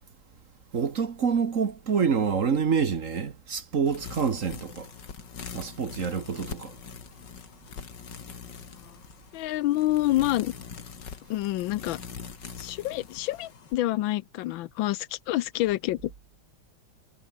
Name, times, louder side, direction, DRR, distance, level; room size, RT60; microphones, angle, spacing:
voice 1, 0.7-4.9 5.5-6.7, right 6 dB, 45° right, 1.5 m, -27 dB
sound 1, 3.9-13.7, left 6 dB, 60° left, 2.6 m, -43 dB
voice 2, 9.3-10.5 11.3-12.0 12.6-16.1, left 15 dB, 80° left, 1.4 m, -27 dB
omnidirectional pair, 2.2 m